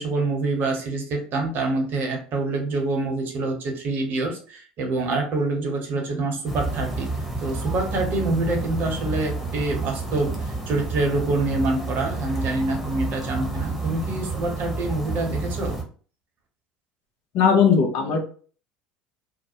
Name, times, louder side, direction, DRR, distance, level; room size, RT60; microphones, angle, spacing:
voice 1, 0.0-7.1 7.4-15.8, right 2 dB, 50° right, 2 dB, 0.9 m, -26 dB
sound 1, 6.5-15.8, right 2 dB, ahead, 1.0 m, -30 dB
voice 2, 17.3-18.3, left 6 dB, 60° left, 3 dB, 0.7 m, -18 dB
2.5 x 2.0 x 2.8 m, 0.41 s
hypercardioid pair, 70°, 4 cm